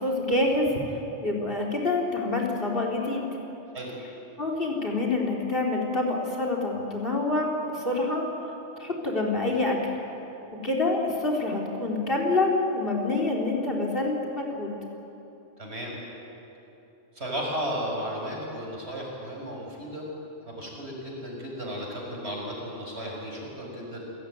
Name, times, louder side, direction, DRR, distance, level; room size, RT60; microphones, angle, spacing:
voice 1, 0.0-3.2 4.4-8.5 8.8-9.9 10.6-14.7, left 2 dB, 50° left, 0 dB, 3.9 m, -27 dB
voice 2, 15.6-15.9 17.1-20.0 20.4-24.1, equal, 60° right, -2 dB, 6.3 m, -34 dB
28.0 x 18.0 x 9.4 m, 2.9 s
omnidirectional pair, 1.2 m